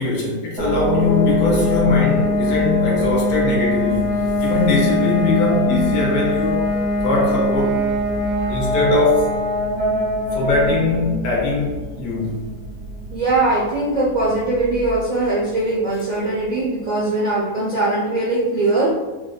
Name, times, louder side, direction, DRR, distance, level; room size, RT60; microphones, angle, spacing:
voice 1, 0.0-6.7 7.0-7.8 8.5-9.3 10.3-12.4, left 2 dB, 80° left, -2 dB, 1.4 m, -20 dB
sound 1, 0.6-15.2, left 1 dB, 80° right, 1.5 m, -22 dB
voice 2, 13.1-18.9, right 2 dB, 65° right, -7 dB, 0.4 m, -21 dB
4.0 x 2.4 x 2.2 m, 1.2 s
omnidirectional pair, 1.6 m